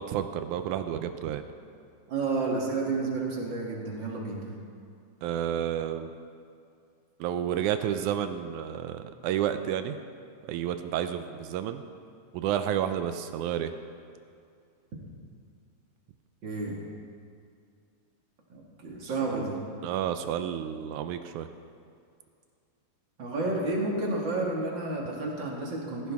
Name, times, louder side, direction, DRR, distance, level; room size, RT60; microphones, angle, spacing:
voice 1, 0.0-1.5 5.2-6.1 7.2-10.0 10.5-11.8 12.3-13.7 19.0-19.5 19.8-21.5, right 10 dB, 80° right, 9 dB, 2.0 m, -31 dB
voice 2, 2.1-4.4 16.4-16.8 18.5-19.6 23.2-26.1, right 3 dB, 40° right, -2 dB, 2.3 m, -31 dB
16.0 x 15.5 x 3.5 m, 2.4 s
omnidirectional pair, 3.5 m